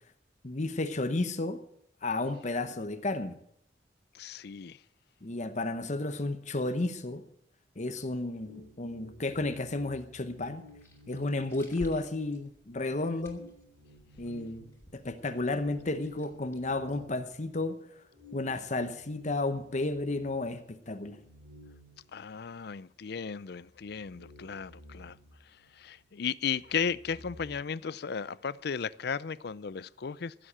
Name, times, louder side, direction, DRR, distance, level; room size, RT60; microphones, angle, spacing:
voice 1, 0.4-1.6 2.0-3.4 5.2-7.2 7.8-10.6 11.1-13.5 14.2-14.7 14.9-17.8 18.3-21.2, left 2 dB, 40° left, 0.9 m, -32 dB
voice 2, 4.1-4.8 22.1-25.2 25.7-30.5, left 6 dB, 60° left, 0.5 m, -35 dB
sound 1, 8.2-12.3 12.7-12.8 13.2-17.6 18.1-22.8 23.1-23.2 23.6-26.1 26.4-27.6, left 1 dB, 80° right, 4.9 m, -55 dB
sound 2, 10.3-17.6, equal, 15° left, 2.8 m, -54 dB
15.5 x 7.7 x 8.7 m
head